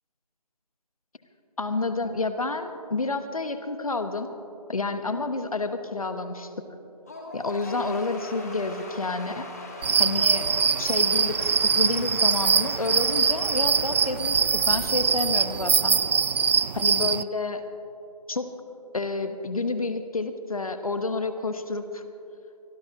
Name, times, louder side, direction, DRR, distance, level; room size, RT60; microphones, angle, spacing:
voice 1, 1.6-4.3 4.7-6.5 7.3-9.5 10.0-10.5 10.8-16.0 16.7-17.6 18.3-18.5 18.9-22.0, left 3 dB, 60° left, 9 dB, 1.2 m, -29 dB
Cheering / Applause / Crowd, 7.1-15.7, left 2 dB, 25° left, 1.5 m, -41 dB
sound 1, 9.8-17.2, right 6 dB, 85° right, 0.4 m, -23 dB
24.0 x 12.5 x 3.0 m, 2.9 s
figure-of-eight pair, 175°, 21 cm